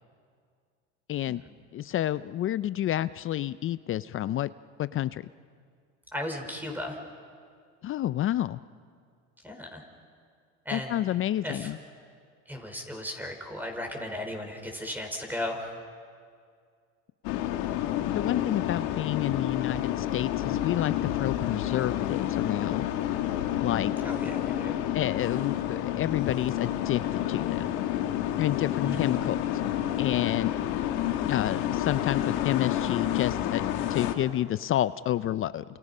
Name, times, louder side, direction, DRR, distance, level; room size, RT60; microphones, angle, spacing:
voice 1, 1.1-1.4 1.7-4.5 4.8-5.2 7.8-8.6 10.7-11.8 18.1-22.9 23.6-23.9 24.9-27.7 28.4-29.4 30.0-30.5 31.2-33.6 33.9-35.6, left 13 dB, 40° left, 15 dB, 0.5 m, -29 dB
voice 2, 6.1-7.0 9.4-9.8 10.6-11.0 11.4-11.7 12.5-15.6 24.0-24.8 28.8-29.1, left 1 dB, 5° right, 3 dB, 4.7 m, -35 dB
sound 1, 17.2-34.1, left 12 dB, 80° left, 1.9 m, -29 dB
29.5 x 28.0 x 5.6 m, 2.1 s
supercardioid pair, 95°, 31 cm